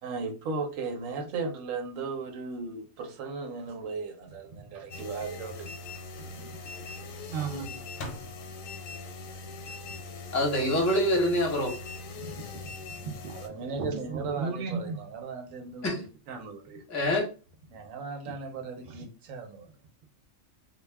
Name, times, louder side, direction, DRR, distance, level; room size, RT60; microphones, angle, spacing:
voice 1, 0.0-5.7 13.3-16.8 17.7-19.7, right 4 dB, 85° right, 1.0 m, -36 dB
sound 1, 4.9-13.5, left 3 dB, 80° left, 1.0 m, -41 dB
Microwave oven, 5.2-5.5 5.9-6.0 7.9-8.9, left 2 dB, 60° left, 0.7 m, -43 dB
voice 2, 6.2-6.5 7.3-8.1 12.2-12.6 13.1-13.4 13.8-15.0 18.9-19.0, right 5 dB, 55° right, 0.6 m, -36 dB
voice 3, 10.3-11.7 15.8-16.0 16.9-17.3, left 1 dB, 20° left, 0.5 m, -25 dB
2.3 x 2.2 x 3.3 m
omnidirectional pair, 1.3 m